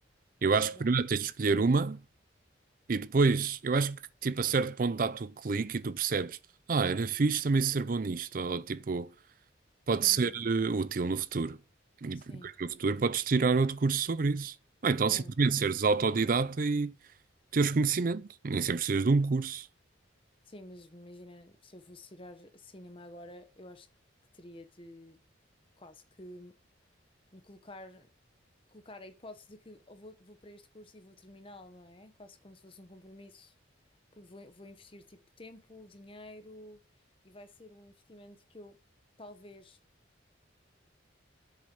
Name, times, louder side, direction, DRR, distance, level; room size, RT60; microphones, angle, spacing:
voice 1, 0.4-2.0 2.9-6.4 6.7-9.1 9.9-11.6 12.0-14.5 14.8-16.9 17.5-19.7, right 4 dB, 45° right, 0.5 m, -28 dB
voice 2, 10.0-10.4 12.1-12.5 15.1-15.3 20.5-23.9 24.3-25.2 25.8-26.5 27.3-28.1 28.7-33.5 34.1-36.8 37.2-38.8 39.2-39.8, left 1 dB, 30° left, 1.0 m, -50 dB
7.6 x 6.8 x 7.7 m
head